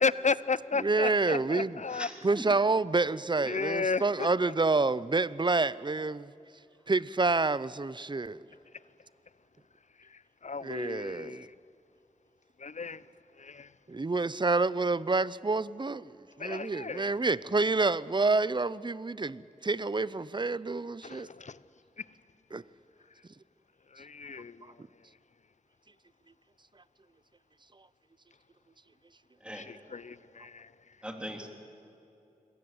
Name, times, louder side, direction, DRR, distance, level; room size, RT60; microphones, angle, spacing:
voice 1, 0.0-2.1 3.5-4.3 10.1-11.5 12.6-13.0 13.4-13.7 16.4-17.1 21.0-21.6 22.0-22.1 23.9-24.8 29.5-30.7, left 4 dB, 60° left, 0.7 m, -33 dB
voice 2, 0.8-1.8 2.2-6.3 6.9-8.4 10.6-11.5 13.9-21.3 22.5-22.6, right 3 dB, 35° right, 0.6 m, -28 dB
voice 3, 1.9-2.5 29.4-29.7 31.0-31.5, equal, 5° right, 3.7 m, -41 dB
27.0 x 21.5 x 7.8 m
wide cardioid pair, 50°, 14 cm